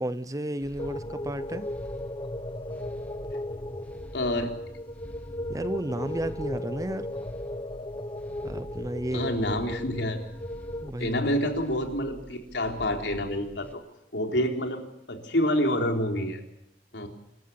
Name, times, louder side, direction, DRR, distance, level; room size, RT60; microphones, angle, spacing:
voice 1, 0.0-1.7 5.5-7.1 8.4-9.3 10.8-11.1, right 1 dB, 20° right, 13 dB, 0.9 m, -32 dB
sound 1, 0.6-13.7, equal, 10° left, 2.0 m, -47 dB
sound 2, 0.8-10.9, left 1 dB, 25° left, 1.3 m, -36 dB
voice 2, 4.1-4.5 9.1-10.2 11.0-13.8 14.1-14.8 15.1-16.4 16.9-17.1, left 1 dB, 75° left, 3 dB, 3.9 m, -27 dB
26.5 x 14.5 x 8.6 m, 0.84 s
head